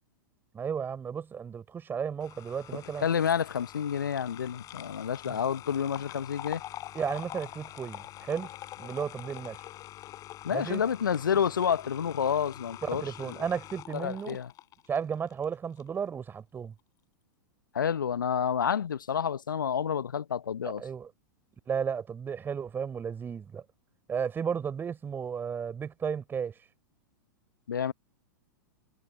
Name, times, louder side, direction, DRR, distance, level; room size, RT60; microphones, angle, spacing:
voice 1, 0.5-3.1 5.3-5.4 6.9-8.5 8.8-9.6 10.5-10.8 12.8-14.4 14.9-16.7 20.6-21.1 21.7-23.6 24.1-26.5, right 7 dB, 20° right, 4.4 m, -34 dB
sound 1, 2.2-15.4 15.8-15.9, left 14 dB, 30° left, 5.4 m, -45 dB
voice 2, 3.0-6.6 10.4-13.4 13.9-14.5 17.7-20.8 27.7-27.9, left 8 dB, 70° left, 1.2 m, -29 dB
figure-of-eight pair, 100°, 11 cm